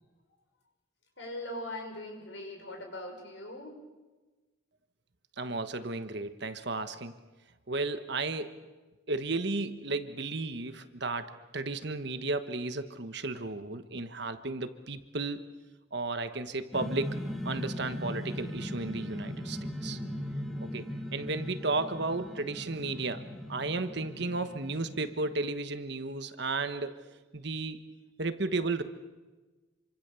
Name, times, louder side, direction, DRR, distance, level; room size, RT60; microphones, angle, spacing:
voice 1, 1.2-3.7, left 1 dB, 65° left, 3 dB, 5.8 m, -40 dB
voice 2, 5.4-7.1 7.7-8.6 9.1-15.4 15.9-17.2 17.4-20.0 20.6-20.9 21.1-23.2 23.5-27.0 27.3-27.8 28.2-28.8, right 3 dB, 55° right, 10 dB, 1.3 m, -34 dB
sound 1, 16.7-25.4, equal, ahead, 2.2 m, -39 dB
27.5 x 25.0 x 7.0 m, 1.2 s
head